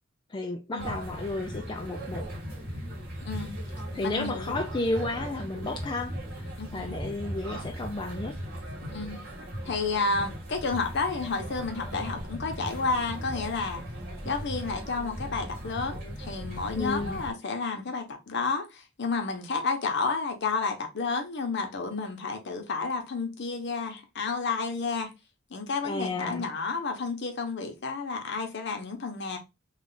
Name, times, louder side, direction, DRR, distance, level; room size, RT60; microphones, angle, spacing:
voice 1, 0.3-2.3 3.9-6.5 6.7-8.6 16.8-17.2 25.8-26.5, left 2 dB, 20° left, 0.4 m, -32 dB
sound 1, 0.8-17.3, equal, 50° right, 1.6 m, -38 dB
voice 2, 3.2-3.6 4.0-4.6 6.6-6.9 8.8-9.2 9.7-13.8 14.2-25.1 25.5-29.4, left 4 dB, 60° left, 0.9 m, -31 dB
3.3 x 2.4 x 3.8 m
head